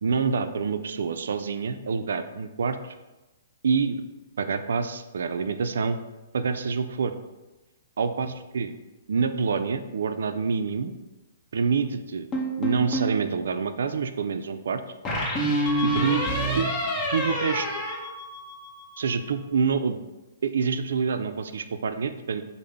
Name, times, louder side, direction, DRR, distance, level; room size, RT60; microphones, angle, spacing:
voice 1, 0.0-2.9 3.6-4.0 4.4-6.0 6.3-7.1 8.0-8.7 9.1-10.9 11.5-12.3 12.6-14.8 15.8-16.2 16.6-16.7 17.1-17.7 19.0-20.0 20.4-22.4, right 5 dB, 75° right, 9 dB, 0.3 m, -26 dB
sound 1, 12.3-13.2 15.1-18.8, right 1 dB, 20° left, 0.8 m, -27 dB
5.4 x 2.0 x 3.4 m, 1.1 s
hypercardioid pair, 140°, 0 cm